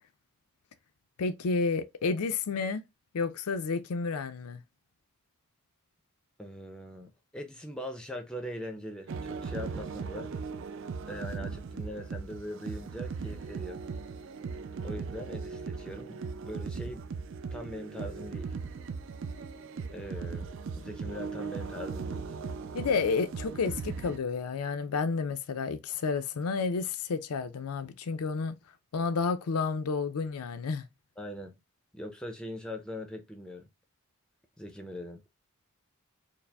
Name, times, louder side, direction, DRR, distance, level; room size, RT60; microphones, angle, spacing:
voice 1, 1.2-2.8 3.1-4.6 22.7-28.5 28.9-30.9, left 4 dB, 80° left, 0.5 m, -30 dB
voice 2, 6.4-10.3 11.1-13.8 14.8-17.1 17.5-18.6 19.9-22.3 31.2-31.5 31.9-33.7 34.6-35.2, equal, 5° left, 0.5 m, -41 dB
sound 1, 9.1-24.2, right 5 dB, 55° right, 0.3 m, -38 dB
4.6 x 2.0 x 3.4 m
head